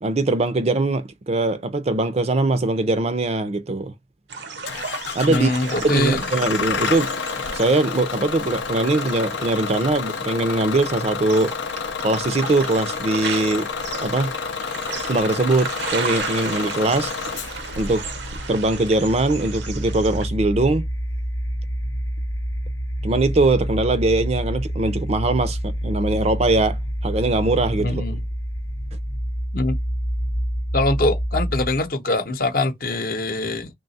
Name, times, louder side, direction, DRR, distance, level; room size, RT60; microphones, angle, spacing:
voice 1, 0.0-3.9 5.1-5.5 5.8-7.1 7.5-11.5 12.0-13.7 14.0-14.3 15.1-17.1 17.8-18.1 18.5-20.9 23.0-28.0, right 2 dB, 35° right, 0.5 m, -21 dB
sound 1, 4.3-20.3, right 5 dB, 75° right, 0.7 m, -35 dB
Bus / Engine starting, 4.7-20.9, left 6 dB, 90° left, 0.5 m, -30 dB
voice 2, 5.3-6.2 27.8-28.2 29.5-29.8 30.7-33.7, left 2 dB, 55° left, 0.7 m, -23 dB
sound 2, 17.2-31.9, equal, 20° left, 0.5 m, -28 dB
3.2 x 2.2 x 4.0 m
head